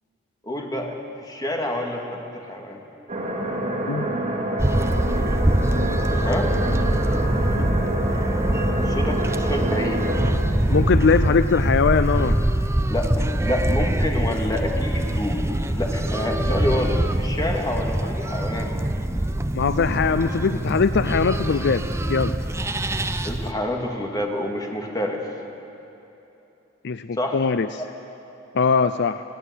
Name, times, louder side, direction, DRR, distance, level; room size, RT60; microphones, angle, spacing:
voice 1, 0.4-2.8 6.2-6.5 8.8-10.0 12.9-18.7 23.2-25.2 27.2-27.4 27.8-27.9, left 1 dB, 20° left, 1 dB, 2.3 m, -28 dB
sound 1, 3.1-10.3, right 1 dB, 35° right, 3.0 m, -26 dB
voice 2, 3.9-4.4 7.5-7.9 10.7-12.4 19.5-22.3 26.8-27.8 28.5-29.2, left 5 dB, 60° left, 11 dB, 0.5 m, -22 dB
sound 2, 4.6-23.5, right 1 dB, 15° right, 0.6 m, -24 dB
21.0 x 17.0 x 8.3 m, 3.0 s
head